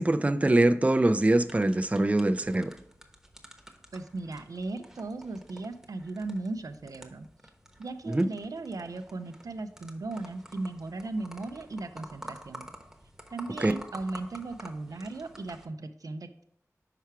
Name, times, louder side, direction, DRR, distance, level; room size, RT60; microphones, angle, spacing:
voice 1, 0.0-2.7 8.1-8.3 13.6-13.7, right 2 dB, 25° right, 10 dB, 0.4 m, -23 dB
sound 1, 1.0-15.7, equal, 5° right, 0.9 m, -50 dB
voice 2, 3.9-7.3 7.8-12.7 13.3-16.4, right 2 dB, 85° right, 9 dB, 0.4 m, -37 dB
5.8 x 4.6 x 4.5 m, 0.72 s
wide cardioid pair, 45°, 6 cm